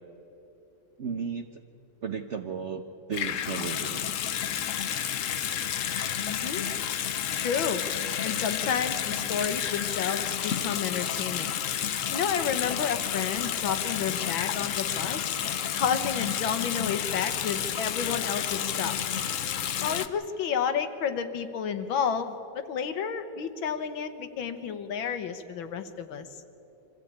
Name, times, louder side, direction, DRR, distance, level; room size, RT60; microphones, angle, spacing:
voice 1, 1.0-1.6 2.0-4.1, right 6 dB, 60° right, 6 dB, 0.7 m, -34 dB
Water tap faucet / Sink (filling or washing) / Bathtub (filling or washing), 3.1-20.1, left 9 dB, 65° left, 0.8 m, -30 dB
voice 2, 6.2-6.7 7.4-11.5 12.1-15.4 15.7-19.0 19.8-26.3, left 7 dB, 85° left, 9 dB, 1.9 m, -31 dB
24.5 x 15.0 x 8.7 m, 2.9 s
omnidirectional pair, 2.1 m